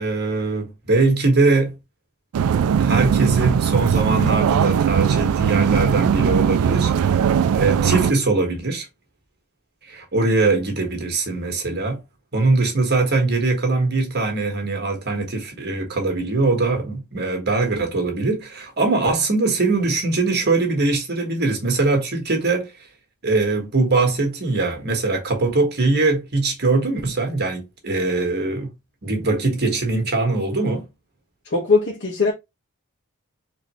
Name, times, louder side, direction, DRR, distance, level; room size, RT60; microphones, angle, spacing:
voice 1, 0.0-1.8 2.8-8.9 9.9-12.0 12.3-22.7 23.2-28.7 29.0-30.9, right 3 dB, 50° right, 1.5 m, -21 dB
sound 1, 2.3-8.1, right 7 dB, 85° right, 0.3 m, -19 dB
voice 2, 31.5-32.3, left 4 dB, 55° left, 1.3 m, -19 dB
4.2 x 3.2 x 3.1 m
head